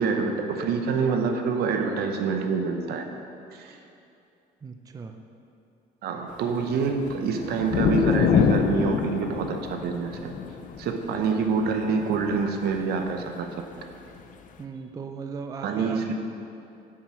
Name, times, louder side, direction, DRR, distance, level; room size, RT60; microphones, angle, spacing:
voice 1, 0.0-3.1 3.5-3.8 6.0-10.3 10.8-13.5 15.6-16.1, right 5 dB, 70° right, 5 dB, 0.8 m, -26 dB
voice 2, 4.6-5.2 14.6-16.1, right 5 dB, 20° right, 6 dB, 0.4 m, -37 dB
sound 1, 6.7-13.3 14.2-14.3, left 7 dB, 50° left, 0.5 m, -26 dB
7.4 x 6.0 x 4.3 m, 2.6 s
cardioid pair, 110°, 17 cm